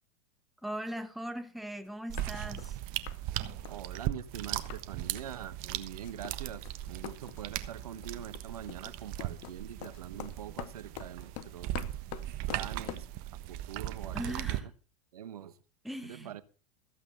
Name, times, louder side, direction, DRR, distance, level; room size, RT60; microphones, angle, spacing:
voice 1, 0.6-2.8 14.1-14.7 15.8-16.3, equal, ahead, 1.2 m, -39 dB
sound 1, 1.9-2.0 2.2-2.8 3.1-3.2 3.5-4.9 5.1-5.4 5.7-13.1, left 14 dB, 55° left, 1.1 m, -46 dB
sound 2, 2.1-14.6, right 14 dB, 50° right, 1.3 m, -38 dB
voice 2, 3.7-11.7 12.5-13.1 13.5-14.6 15.1-15.6 16.0-16.4, right 10 dB, 80° right, 1.1 m, -44 dB
14.5 x 8.2 x 5.5 m
hypercardioid pair, 95°, 19 cm